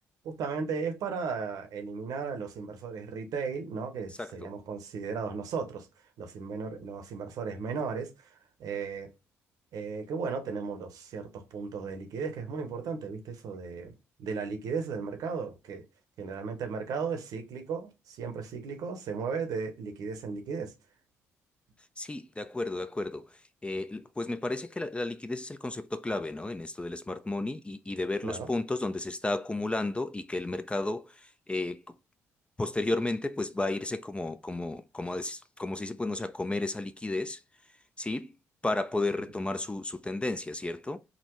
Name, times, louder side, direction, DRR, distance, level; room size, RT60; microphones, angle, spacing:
voice 1, 0.2-5.9 6.2-9.1 9.7-13.9 14.2-15.8 16.2-20.7 28.2-28.5, right 5 dB, 70° right, 0.8 m, -35 dB
voice 2, 4.2-4.5 22.0-31.9 32.6-37.4 38.0-38.3 38.6-41.0, left 2 dB, 15° left, 0.4 m, -33 dB
3.6 x 2.1 x 3.0 m
hypercardioid pair, 50°, 7 cm